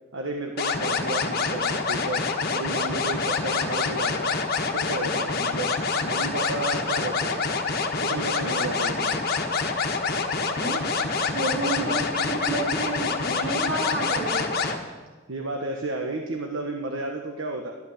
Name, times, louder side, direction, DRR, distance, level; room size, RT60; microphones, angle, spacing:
voice 1, 0.1-2.2 2.5-4.4 4.7-5.7 6.0-7.4 8.0-9.2 11.8-12.0 15.3-17.7, right 2 dB, 80° right, 2 dB, 1.3 m, -32 dB
sound 1, 0.6-14.8, left 4 dB, 50° left, 1.3 m, -26 dB
voice 2, 11.3-14.4, right 2 dB, 55° right, -1 dB, 3.8 m, -30 dB
12.0 x 12.0 x 7.2 m, 1.3 s
head